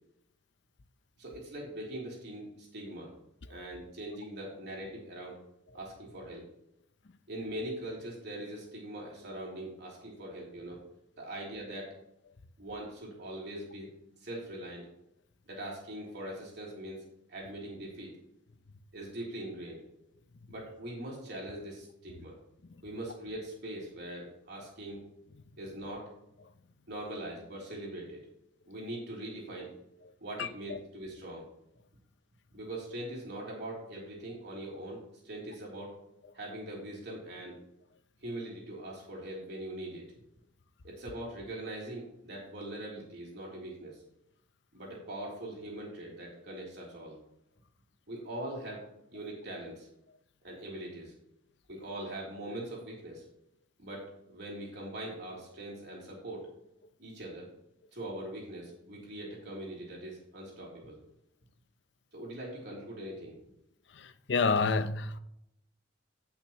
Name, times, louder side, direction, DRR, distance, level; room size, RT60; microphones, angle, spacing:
voice 1, 1.2-3.1 3.5-5.4 5.7-6.4 7.3-10.8 11.2-12.0 12.6-13.9 14.2-14.9 15.5-17.0 17.3-18.1 18.9-19.8 20.5-22.4 22.8-25.0 25.6-26.1 26.9-28.2 28.7-29.7 30.2-31.5 32.5-36.0 36.3-37.6 38.2-40.0 40.8-44.0 44.7-47.2 48.1-49.9 50.4-51.1 51.7-53.2 53.8-56.5 57.0-57.5 57.9-61.0 62.1-63.4, right 1 dB, 60° right, 3.5 m, -42 dB
voice 2, 64.3-65.2, left 4 dB, 65° left, 0.7 m, -27 dB
16.5 x 6.1 x 3.1 m
head